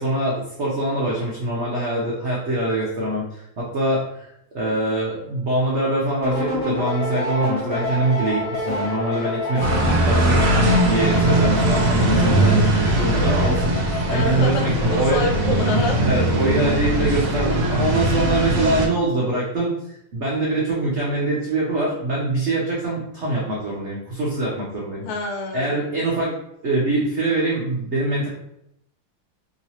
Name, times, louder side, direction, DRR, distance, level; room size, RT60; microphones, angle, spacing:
voice 1, 0.0-4.3 4.5-10.5 10.8-15.2 16.0-25.0 25.5-26.4 26.6-28.3, right 2 dB, 80° right, -5 dB, 0.6 m, -24 dB
sound 1, 6.2-15.6, left 2 dB, 55° left, 0.9 m, -28 dB
sound 2, 9.6-18.9, right 1 dB, 60° right, 0.9 m, -20 dB
voice 2, 14.1-16.0 25.0-25.8, left 1 dB, 80° left, 2 dB, 1.3 m, -26 dB
3.0 x 2.9 x 2.8 m, 0.78 s
omnidirectional pair, 2.1 m